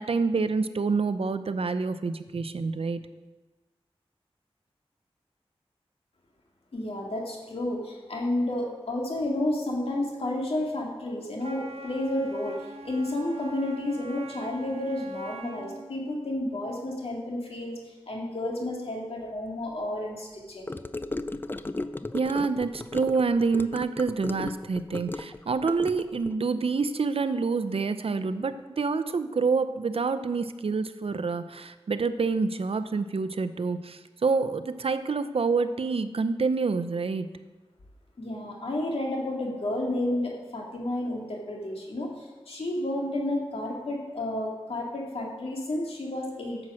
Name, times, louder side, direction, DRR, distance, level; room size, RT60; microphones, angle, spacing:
voice 1, 0.0-3.0 22.1-37.3, right 4 dB, 70° right, 11 dB, 0.6 m, -27 dB
voice 2, 6.7-17.8 18.1-20.7 38.2-46.6, left 1 dB, 70° left, -1 dB, 2.4 m, -31 dB
Wind instrument woodwind instrument, 11.4-15.9, right 2 dB, 85° right, 1.0 m, -43 dB
Gurgling / Car passing by / Sink (filling or washing), 20.7-26.3, left 2 dB, 20° left, 0.4 m, -36 dB
10.0 x 7.7 x 6.2 m, 1.2 s
wide cardioid pair, 70°, 10 cm